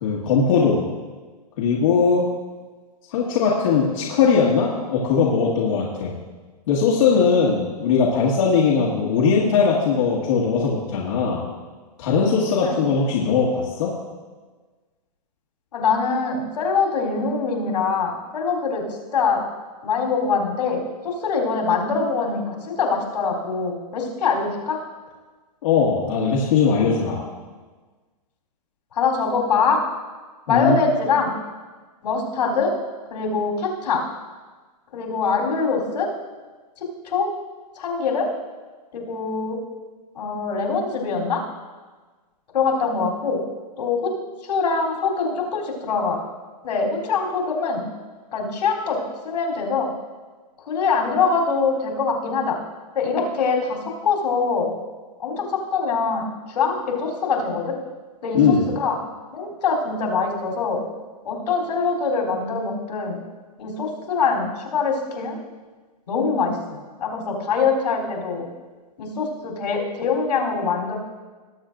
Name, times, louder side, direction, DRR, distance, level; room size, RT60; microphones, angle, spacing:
voice 1, 0.0-0.8 1.6-2.2 3.1-6.1 6.7-11.4 12.0-13.9 25.6-27.2 30.5-30.8 58.3-58.6, left 5 dB, 50° left, -5 dB, 1.8 m, -19 dB
voice 2, 15.7-18.8 19.1-19.4 19.8-24.8 28.9-29.8 30.5-31.3 32.0-32.7 33.1-34.0 34.9-36.1 36.8-37.3 37.8-38.3 38.9-39.6 40.2-41.4 42.5-43.4 43.8-44.1 44.4-46.2 46.6-47.9 48.3-49.9 50.7-52.6 52.9-54.7 55.2-57.8 58.2-59.0 59.3-60.8 61.2-63.2 63.6-65.4 66.1-66.6 67.0-68.5 69.0-71.0, left 5 dB, 80° left, -2 dB, 3.5 m, -23 dB
20.0 x 7.6 x 2.6 m, 1.4 s
hypercardioid pair, 160°, 21 cm